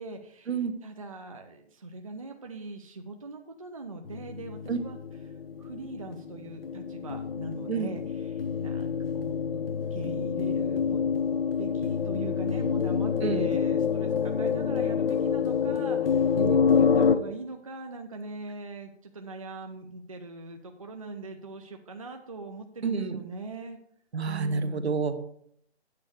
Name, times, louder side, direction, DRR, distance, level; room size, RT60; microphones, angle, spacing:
voice 1, 0.0-0.6 0.8-5.0 5.6-9.6 9.9-11.0 11.5-16.4 16.7-23.8 24.2-24.9, right 3 dB, 30° right, 4 dB, 0.5 m, -41 dB
sound 1, 4.1-17.2, left 7 dB, 60° left, 0.8 m, -27 dB
voice 2, 16.4-16.7 22.8-23.2 24.1-25.1, right 5 dB, 70° right, 9 dB, 1.2 m, -29 dB
8.5 x 4.7 x 6.6 m, 0.68 s
hypercardioid pair, 175°, 34 cm